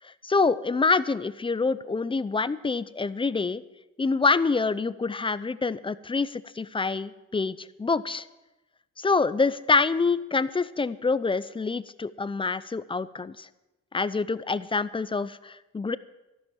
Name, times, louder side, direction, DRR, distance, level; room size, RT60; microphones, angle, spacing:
voice 1, 0.0-3.6 4.0-8.3 9.0-13.5 13.9-16.0, left 4 dB, 15° left, 16 dB, 0.6 m, -26 dB
13.0 x 12.0 x 7.4 m, 1.0 s
cardioid pair, 90°, 30 cm